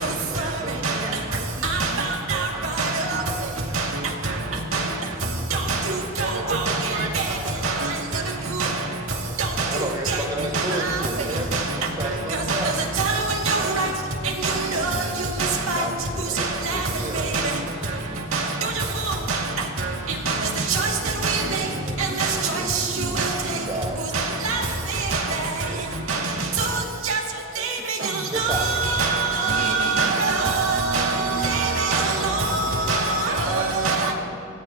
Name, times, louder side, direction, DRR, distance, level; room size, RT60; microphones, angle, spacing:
voice 1, 0.0-4.1 9.6-11.5 11.8-12.8 13.6-13.7 15.7-17.5 21.6-23.0 23.5-24.0 25.7-25.9 26.2-26.5 28.3-28.9 29.5-30.5 31.1-33.1, right 1 dB, 20° right, 1.8 m, -34 dB
voice 2, 2.8-3.2 3.7-3.8 4.7-4.8 6.5-6.7 7.1-7.2 8.6-8.7 9.6-9.7 10.5-10.6 11.5-11.6 12.5-12.6 13.0-13.1 13.5-13.9 14.4-14.5 14.9-15.0 15.4-15.8 16.4-16.8 17.3-17.4 18.3-18.4 19.3-19.4 20.3-20.4 20.7-20.9 21.2-21.4 22.2-22.3 23.2-23.3 24.1-24.6 25.1-25.2 26.1-26.2 26.6-26.7 27.1-27.2 28.4-34.1, right 4 dB, 85° right, 2.3 m, -23 dB
voice 3, 6.1-7.9 14.7-15.6 15.8-16.0 21.0-22.4 24.2-28.0 33.2-34.1, right 2 dB, 60° right, 3.0 m, -36 dB
25.0 x 17.5 x 3.0 m
head